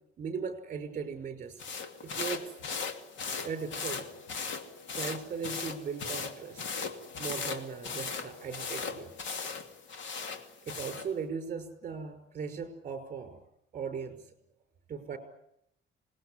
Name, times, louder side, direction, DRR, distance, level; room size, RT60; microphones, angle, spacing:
voice 1, 0.2-1.6 2.0-2.5 3.4-4.1 4.9-6.7 7.2-9.1 10.7-13.4 13.7-14.3 14.9-15.2, right 6 dB, 35° right, 7 dB, 5.6 m, -38 dB
sound 1, 1.6-11.1, left 5 dB, 65° left, 2.6 m, -38 dB
Wind instrument woodwind instrument, 4.0-9.7, left 3 dB, 80° left, 3.0 m, -55 dB
27.0 x 20.0 x 10.0 m, 0.77 s
cardioid pair, 160°, 21 cm